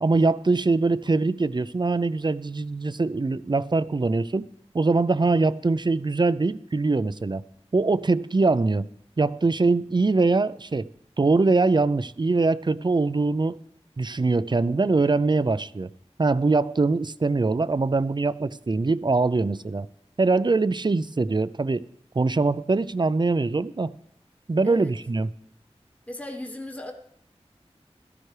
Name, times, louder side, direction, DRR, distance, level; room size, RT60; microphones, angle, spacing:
voice 1, 0.0-4.5 4.7-7.4 7.7-8.9 9.2-10.9 11.2-13.6 14.0-15.9 16.2-19.9 20.2-21.9 22.2-23.9 24.5-25.3, right 3 dB, 40° right, 0.5 m, -23 dB
voice 2, 26.1-26.9, left 1 dB, 10° left, 1.3 m, -36 dB
16.5 x 13.5 x 3.3 m
wide cardioid pair, 60°, 11 cm